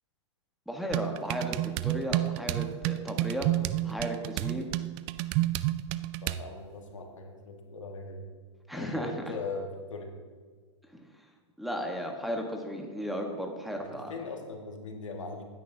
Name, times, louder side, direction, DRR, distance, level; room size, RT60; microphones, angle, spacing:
voice 1, 0.7-3.5 3.8-4.7 8.7-9.2 10.9-11.1 11.6-14.2, equal, ahead, 1 dB, 1.2 m, -35 dB
sound 1, 0.9-6.5, right 16 dB, 40° right, 0.4 m, -30 dB
voice 2, 6.2-8.3 8.7-10.1 13.8-15.4, left 3 dB, 90° left, 2 dB, 1.7 m, -40 dB
15.0 x 9.4 x 2.7 m, 1.5 s
hypercardioid pair, 120°, 16 cm